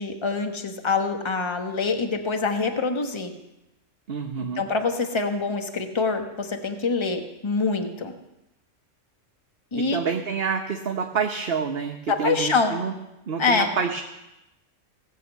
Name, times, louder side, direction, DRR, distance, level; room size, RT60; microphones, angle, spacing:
voice 1, 0.0-3.3 4.4-8.1 9.7-10.0 12.1-12.8 13.4-13.7, left 4 dB, 25° left, 5 dB, 1.1 m, -25 dB
voice 2, 4.1-4.6 9.8-12.9 13.3-14.0, right 6 dB, 50° right, 3 dB, 1.1 m, -28 dB
17.5 x 7.0 x 8.2 m, 0.92 s
omnidirectional pair, 1.3 m